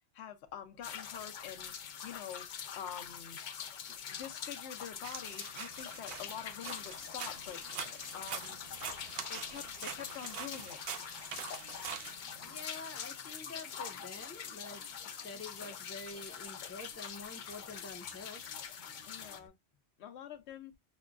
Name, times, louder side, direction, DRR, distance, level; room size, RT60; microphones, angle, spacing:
voice 1, 0.1-1.7 2.0-2.4 2.8-3.4 4.1-7.6 8.1-8.6 9.3-10.8 19.1-19.5 20.0-20.7, left 9 dB, 80° left, 0.9 m, -46 dB
sound 1, 0.8-19.4, left 8 dB, 55° left, 0.6 m, -44 dB
sound 2, 5.0-12.7, right 7 dB, 65° right, 0.8 m, -45 dB
sound 3, 5.8-19.5, right 5 dB, 35° right, 0.5 m, -63 dB
voice 2, 12.4-18.4, left 3 dB, 15° left, 0.7 m, -47 dB
5.9 x 2.2 x 2.3 m
omnidirectional pair, 1.1 m